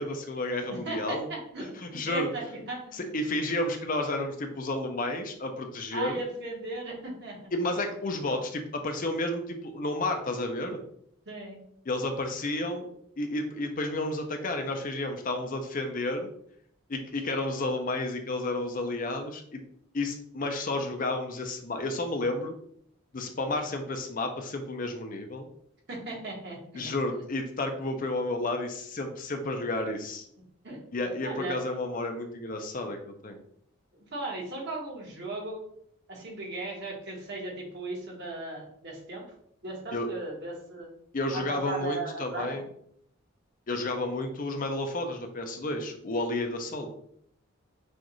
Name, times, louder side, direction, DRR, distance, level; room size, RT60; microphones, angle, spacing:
voice 1, 0.0-1.3 1.6-2.3 2.9-6.1 7.5-10.8 11.9-12.9 13.2-16.3 16.9-19.6 19.9-22.5 23.1-25.5 26.7-30.2 30.9-33.4 39.9-40.1 41.1-42.7 43.7-46.9, left 2 dB, 40° left, 5 dB, 0.5 m, -31 dB
voice 2, 0.7-3.1 5.9-7.4 11.2-11.6 25.9-26.9 30.6-30.8 31.2-31.6 33.9-35.6 36.1-39.2 39.6-40.9 41.3-42.6, right 2 dB, 50° right, -3 dB, 1.5 m, -37 dB
6.2 x 2.5 x 3.0 m, 0.67 s
head